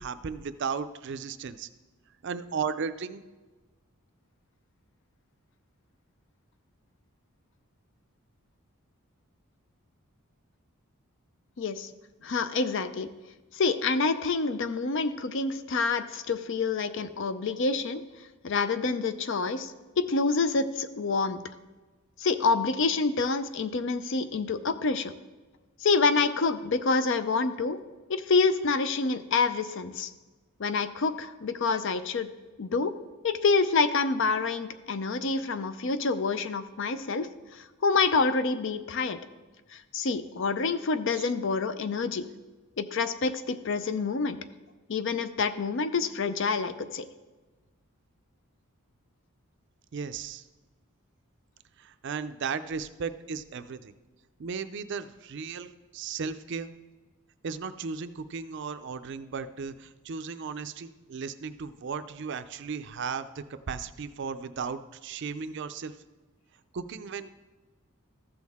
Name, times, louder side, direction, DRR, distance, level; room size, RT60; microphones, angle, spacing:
voice 1, 0.0-1.7 2.2-3.2 41.1-41.3 49.9-50.4 51.8-53.9 54.4-56.7 57.4-65.9 66.7-67.3, right 5 dB, 55° right, 11 dB, 0.4 m, -35 dB
voice 2, 11.6-11.9 12.2-13.1 13.5-18.0 18.4-21.4 22.2-25.1 25.8-27.8 28.1-30.1 30.6-32.3 32.6-32.9 33.2-39.2 39.7-42.2 42.8-44.4 44.9-47.0, left 4 dB, 55° left, 12 dB, 0.5 m, -27 dB
14.0 x 6.3 x 3.5 m, 1.2 s
head